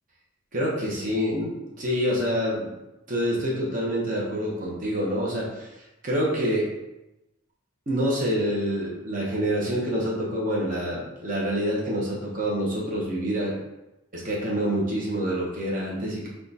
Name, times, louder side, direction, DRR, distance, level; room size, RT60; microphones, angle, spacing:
voice 1, 0.5-2.7 3.1-6.7 7.9-13.6 14.1-16.3, equal, 40° right, -5 dB, 0.8 m, -27 dB
3.7 x 2.3 x 4.0 m, 0.94 s
head